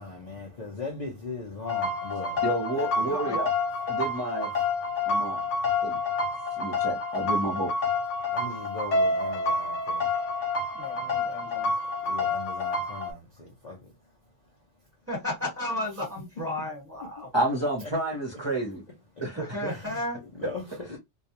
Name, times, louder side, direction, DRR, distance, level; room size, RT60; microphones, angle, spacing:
voice 1, 0.0-2.4 2.7-2.9 8.3-10.1 12.1-13.8 17.2-17.3 19.7-20.0 20.3-21.0, left 3 dB, 45° left, 0.6 m, -39 dB
sound 1, 1.6-13.1, left 3 dB, 85° left, 1.0 m, -28 dB
voice 2, 2.4-3.5 3.8-4.5 5.1-5.4 5.8-6.0 6.6-7.7 17.3-18.8 19.2-19.7, right 1 dB, 30° right, 0.6 m, -30 dB
voice 3, 3.0-3.4 10.7-11.7 15.1-17.3 19.3-20.2, left 1 dB, 10° right, 1.2 m, -34 dB
2.3 x 2.2 x 2.8 m
omnidirectional pair, 1.2 m